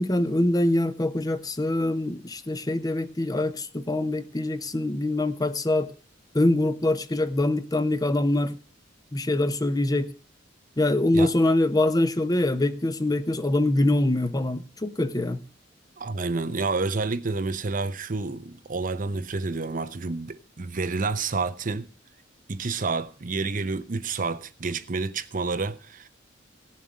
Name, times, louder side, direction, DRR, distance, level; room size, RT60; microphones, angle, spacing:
voice 1, 0.0-5.9 6.3-8.5 9.1-10.1 10.8-15.4, left 1 dB, 20° left, 0.8 m, -24 dB
voice 2, 16.0-21.9 22.5-26.1, right 3 dB, 45° right, 0.7 m, -29 dB
17.0 x 7.4 x 6.3 m
head